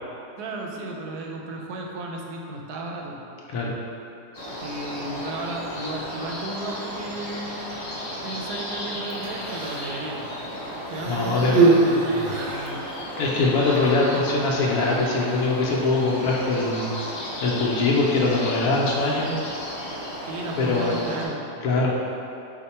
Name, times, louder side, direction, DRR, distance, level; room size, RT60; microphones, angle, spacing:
voice 1, 0.4-3.3 4.6-7.9 8.2-10.3 10.9-12.8 19.1-19.4 20.3-21.6, right 2 dB, 80° right, 0 dB, 1.1 m, -34 dB
sound 1, 4.3-21.3, equal, 40° left, 0.6 m, -34 dB
Human voice, 9.1-10.0 10.9-12.8 13.8-13.9, right 3 dB, 65° right, 0.8 m, -22 dB
voice 2, 11.1-11.6 13.2-16.9 17.4-19.3 20.6-21.0 21.6-21.9, left 3 dB, 65° left, -3 dB, 1.0 m, -22 dB
5.0 x 2.1 x 4.2 m, 2.8 s
omnidirectional pair, 1.7 m